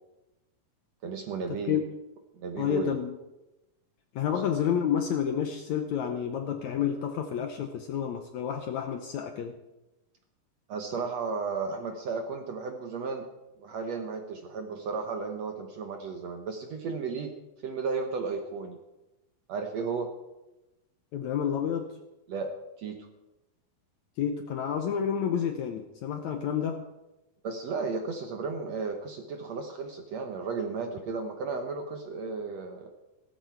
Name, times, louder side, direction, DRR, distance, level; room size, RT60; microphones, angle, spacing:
voice 1, 1.0-1.8 2.3-2.9 4.3-4.4 10.7-13.2 13.6-17.3 17.6-18.8 19.5-20.1 22.3-23.1 27.4-32.9, right 4 dB, 65° right, 4 dB, 1.8 m, -34 dB
voice 2, 2.6-3.2 4.1-9.6 21.1-21.9 24.2-26.9, left 8 dB, 75° left, 6 dB, 1.8 m, -29 dB
17.0 x 14.0 x 4.6 m, 0.99 s
omnidirectional pair, 4.2 m